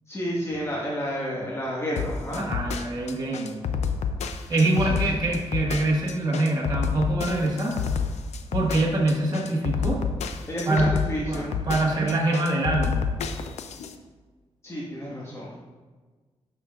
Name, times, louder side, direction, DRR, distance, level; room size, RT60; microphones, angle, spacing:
voice 1, 0.1-2.4 4.9-5.0 10.5-11.5 11.8-12.1 14.6-15.5, equal, 25° left, -5 dB, 1.6 m, -31 dB
sound 1, 2.0-13.9, left 6 dB, 90° left, 0.5 m, -29 dB
voice 2, 2.3-3.6 4.5-7.7 8.5-10.1 10.6-11.0 11.3-13.0, right 2 dB, 35° right, -3 dB, 1.6 m, -24 dB
11.0 x 6.1 x 2.5 m, 1.4 s
cardioid pair, 75°, 11 cm